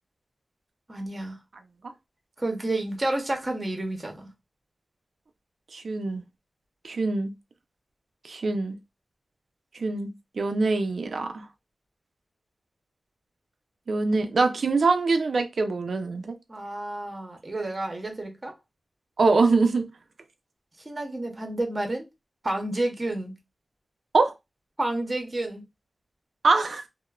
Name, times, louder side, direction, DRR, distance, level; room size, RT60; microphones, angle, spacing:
voice 1, 0.9-1.4 2.4-4.3 16.5-18.5 20.9-22.1 22.4-23.3 24.8-25.6, right 1 dB, 30° right, 0.7 m, -30 dB
voice 2, 5.7-6.2 6.8-7.3 8.3-8.7 9.8-10.1 10.4-11.4 13.9-16.3 17.5-17.7 19.2-19.9 24.1-24.3 26.4-26.8, right 3 dB, 70° right, 0.4 m, -23 dB
3.0 x 2.0 x 2.2 m
wide cardioid pair, 110°, 0 cm